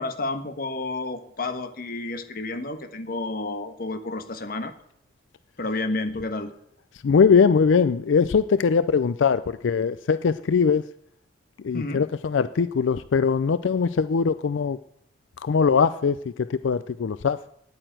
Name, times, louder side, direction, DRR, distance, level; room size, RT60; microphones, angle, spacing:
voice 1, 0.0-4.7 5.6-6.5 11.7-12.1, left 2 dB, 50° left, 9 dB, 1.3 m, -30 dB
voice 2, 7.0-10.8 11.6-14.8 15.4-17.5, left 5 dB, 90° left, 14 dB, 0.4 m, -21 dB
10.0 x 9.0 x 9.0 m, 0.71 s
head